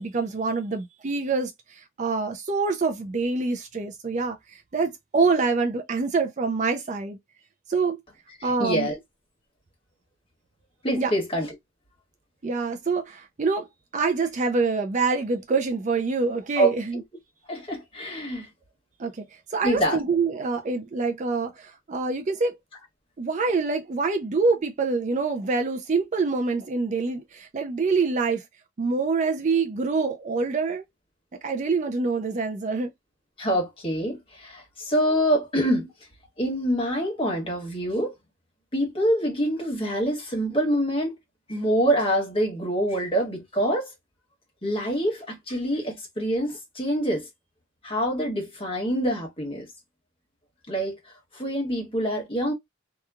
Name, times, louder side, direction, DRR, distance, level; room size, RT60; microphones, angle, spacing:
voice 1, 0.0-7.2 7.7-8.0 8.4-8.9 11.0-11.1 12.4-13.7 13.9-17.0 19.0-19.2 19.5-22.6 23.2-28.4 28.8-30.8 31.4-32.9, right 4 dB, 35° right, 0.4 m, -26 dB
voice 2, 8.4-9.0 10.8-11.5 16.6-17.0 17.5-18.5 19.6-20.0 33.4-35.9 36.4-38.1 38.7-41.1 41.5-43.9 44.6-47.3 47.8-49.7 50.7-52.5, right 1 dB, 25° left, 1.4 m, -26 dB
2.9 x 2.3 x 2.3 m
head